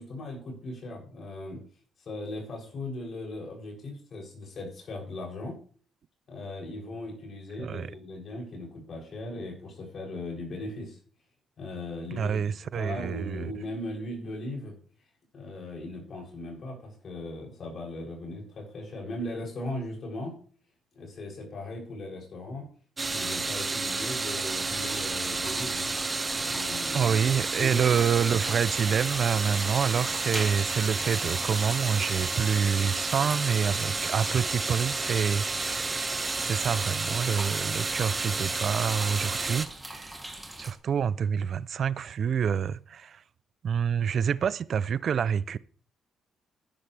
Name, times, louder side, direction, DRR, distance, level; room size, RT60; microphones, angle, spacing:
voice 1, 0.0-1.6 2.1-5.6 6.3-11.0 11.6-14.7 15.3-20.3 20.9-22.7 23.1-25.9 26.4-27.2 27.6-28.0, left 1 dB, 55° left, 7.5 m, -38 dB
voice 2, 7.6-7.9 12.1-13.5 26.9-35.9 36.4-40.2 40.6-43.2 43.6-45.6, right 7 dB, 55° right, 0.5 m, -27 dB
sound 1, 23.0-39.7, right 3 dB, 25° right, 1.1 m, -31 dB
sound 2, 24.5-40.7, right 1 dB, 10° right, 2.8 m, -43 dB
14.0 x 12.5 x 3.4 m
cardioid pair, 90°, 0 cm